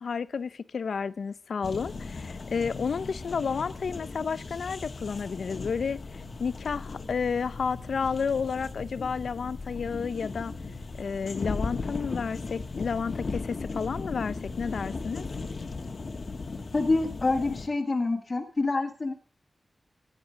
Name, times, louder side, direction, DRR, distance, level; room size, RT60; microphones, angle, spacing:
voice 1, 0.0-6.0 6.4-10.5 11.0-15.2, left 5 dB, 80° left, 0.7 m, -31 dB
sound 1, 1.6-17.7, left 3 dB, 50° left, 1.5 m, -37 dB
voice 2, 16.7-19.1, left 3 dB, 35° left, 1.8 m, -27 dB
16.5 x 10.0 x 6.3 m
wide cardioid pair, 110°, 0 cm